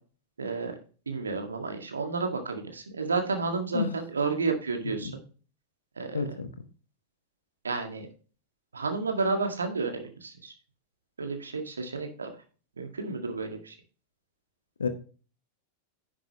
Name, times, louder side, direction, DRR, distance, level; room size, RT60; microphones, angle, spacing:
voice 1, 0.4-0.8 1.1-5.2 6.0-6.2 7.6-8.1 8.7-10.5 11.2-12.3 12.8-13.8, right 4 dB, 75° right, 5 dB, 1.8 m, -31 dB
voice 2, 6.1-6.5 14.8-14.9, left 5 dB, 70° left, 10 dB, 1.1 m, -29 dB
10.5 x 7.4 x 3.0 m, 0.37 s
figure-of-eight pair, 90°, 0 cm